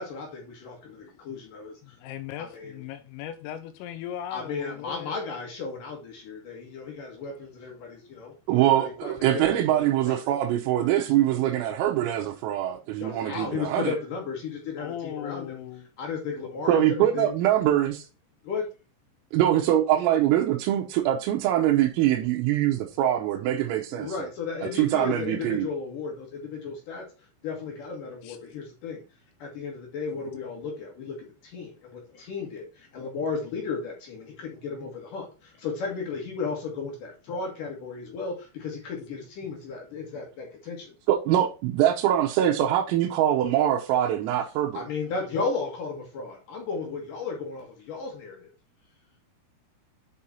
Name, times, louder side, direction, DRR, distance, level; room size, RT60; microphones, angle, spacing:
voice 1, 0.0-1.8 2.4-2.8 4.3-10.4 13.0-15.6 16.0-17.3 18.4-18.7 23.9-27.0 27.4-29.0 29.4-31.1 31.4-40.9 44.7-48.5, left 5 dB, 60° left, 2.4 m, -34 dB
voice 2, 1.8-5.1 14.8-15.9 28.2-28.4, left 11 dB, 90° left, 3.4 m, -38 dB
voice 3, 8.5-13.9 16.7-18.1 19.3-24.3 24.6-25.7 41.1-44.8, right 12 dB, 85° right, 3.6 m, -23 dB
9.0 x 4.9 x 4.2 m
omnidirectional pair, 6.0 m